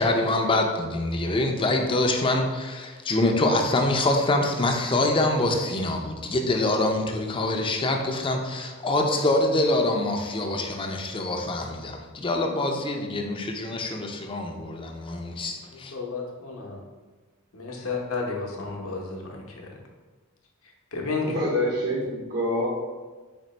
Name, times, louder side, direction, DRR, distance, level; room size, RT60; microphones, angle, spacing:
voice 1, 0.0-15.9, left 2 dB, 25° left, 3 dB, 0.5 m, -25 dB
voice 2, 15.9-16.8 17.5-19.4 20.9-21.4, left 4 dB, 70° left, 0 dB, 0.8 m, -31 dB
voice 3, 21.3-22.7, equal, 55° right, -5 dB, 0.8 m, -26 dB
4.4 x 2.9 x 4.1 m, 1.3 s
head